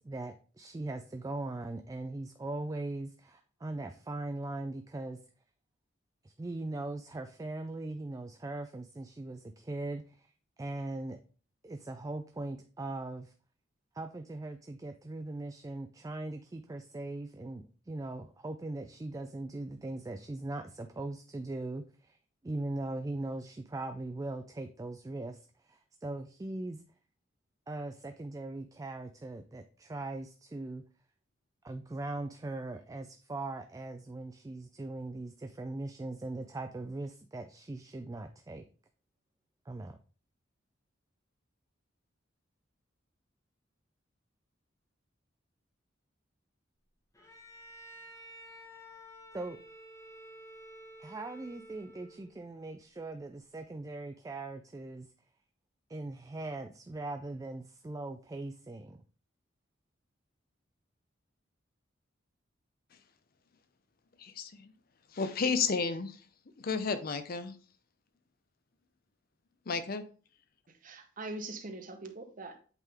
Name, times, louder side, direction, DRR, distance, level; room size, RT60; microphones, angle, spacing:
voice 1, 0.0-5.2 6.2-10.3 10.6-11.2 11.6-13.3 13.9-22.2 22.4-26.8 27.7-30.8 31.6-38.6 39.7-40.0 49.3-49.6 51.0-55.1 55.9-59.0, right 2 dB, 15° right, 7 dB, 0.3 m, -40 dB
Bowed string instrument, 47.1-52.4, equal, 15° left, 1.3 m, -51 dB
voice 2, 64.2-64.7 65.1-66.2 66.6-67.5 69.7-70.0, left 5 dB, 50° left, 10 dB, 0.6 m, -32 dB
voice 3, 70.8-72.6, right 2 dB, 40° right, 6 dB, 0.9 m, -42 dB
8.2 x 3.7 x 3.5 m, 0.39 s
head